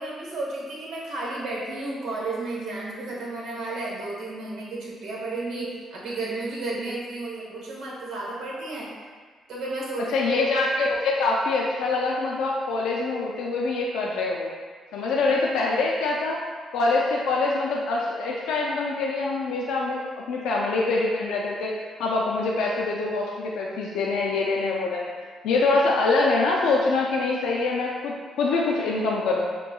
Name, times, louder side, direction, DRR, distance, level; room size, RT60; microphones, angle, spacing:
voice 1, 0.0-8.9 9.5-10.4, right 2 dB, 80° right, -5 dB, 1.2 m, -32 dB
voice 2, 10.1-14.5 14.9-16.4 16.7-20.0 20.3-25.1 25.4-29.5, left 3 dB, 85° left, -3 dB, 0.4 m, -24 dB
6.6 x 2.2 x 2.3 m, 1.6 s
cardioid pair, 90°, 0 cm